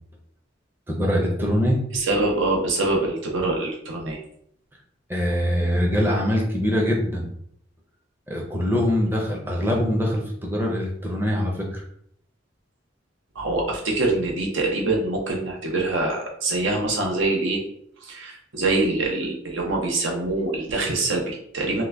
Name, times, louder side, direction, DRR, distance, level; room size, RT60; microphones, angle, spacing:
voice 1, 0.9-1.8 5.1-7.3 8.3-11.8, equal, 10° right, -1 dB, 0.5 m, -23 dB
voice 2, 1.9-4.2 13.4-17.6 18.0-21.8, right 2 dB, 80° right, 0 dB, 0.7 m, -24 dB
3.7 x 2.2 x 3.3 m, 0.68 s
head